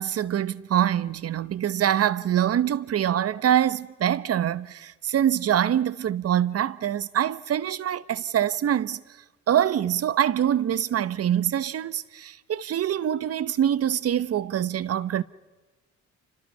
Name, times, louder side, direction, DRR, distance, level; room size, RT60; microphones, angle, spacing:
voice 1, 0.0-9.0 9.5-15.2, right 10 dB, 55° right, 1.0 m, -24 dB
29.0 x 26.0 x 5.6 m
cardioid pair, 75°, 30 cm